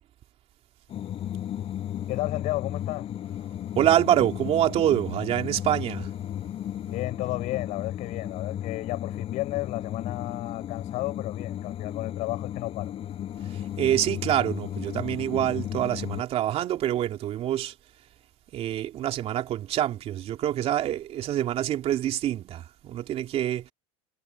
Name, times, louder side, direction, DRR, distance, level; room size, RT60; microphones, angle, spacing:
sound 1, 0.9-16.2, left 11 dB, 40° left, 7.9 m, -34 dB
voice 1, 2.1-3.1 6.9-12.9, left 19 dB, 55° left, 7.7 m, -33 dB
voice 2, 3.7-6.1 13.5-17.7 18.5-23.7, right 12 dB, 45° right, 2.9 m, -26 dB
supercardioid pair, 110°, 15 cm